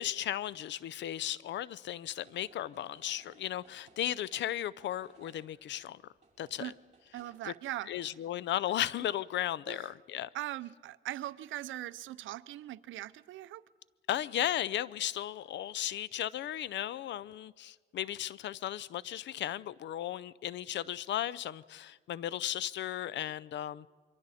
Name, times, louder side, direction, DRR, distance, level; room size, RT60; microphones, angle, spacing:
voice 1, 0.0-6.0 6.4-6.7 7.4-7.5 7.9-10.3 14.1-23.9, left 12 dB, 65° left, 20 dB, 0.5 m, -35 dB
sound 1, 2.2-7.4, right 4 dB, 35° right, 5.4 m, -63 dB
voice 2, 7.1-7.9 9.7-9.8 10.3-13.6, right 14 dB, 75° right, 17 dB, 0.6 m, -40 dB
28.5 x 23.5 x 4.2 m, 1.5 s
cardioid pair, 90°, 20 cm